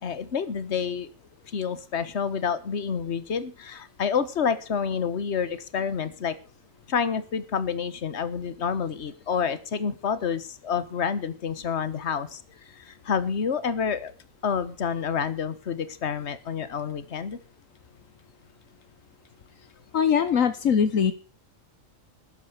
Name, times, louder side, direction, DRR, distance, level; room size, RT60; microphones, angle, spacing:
voice 1, 0.0-1.1 1.5-6.4 6.9-14.1 14.4-17.4, left 6 dB, 55° left, 14 dB, 1.5 m, -28 dB
voice 2, 19.9-21.1, left 7 dB, 75° left, 12 dB, 1.4 m, -21 dB
13.0 x 10.5 x 6.6 m, 0.36 s
omnidirectional pair, 1.4 m